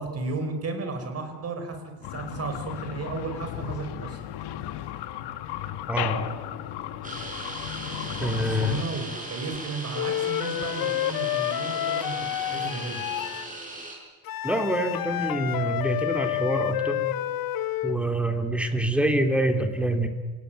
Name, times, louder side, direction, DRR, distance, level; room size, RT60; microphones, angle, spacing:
voice 1, 0.0-4.2 8.0-13.3 18.0-18.2, right 3 dB, 40° right, 6 dB, 5.2 m, -34 dB
sound 1, 2.0-8.8, left 12 dB, 80° left, 1.5 m, -35 dB
voice 2, 5.9-6.2 8.2-8.8 14.4-17.0 17.8-20.1, right 1 dB, 5° right, 5 dB, 2.6 m, -26 dB
sound 2, 7.0-14.0, right 2 dB, 20° right, 6.8 m, -37 dB
Wind instrument woodwind instrument, 9.9-13.5 14.3-18.0, left 13 dB, 60° left, 1.0 m, -29 dB
27.5 x 17.5 x 9.3 m, 1.4 s
cardioid pair, 135°, 40 cm